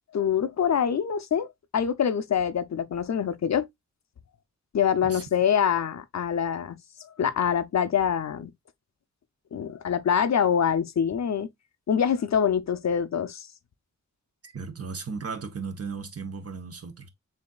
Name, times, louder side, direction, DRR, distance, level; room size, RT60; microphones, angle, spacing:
voice 1, 0.1-1.5 1.7-3.7 4.7-6.8 7.2-8.5 9.5-11.5 11.9-13.5, left 8 dB, 60° left, 0.6 m, -25 dB
voice 2, 14.4-17.1, right 5 dB, 50° right, 1.0 m, -36 dB
7.1 x 2.8 x 2.3 m
cardioid pair, 65°, 30 cm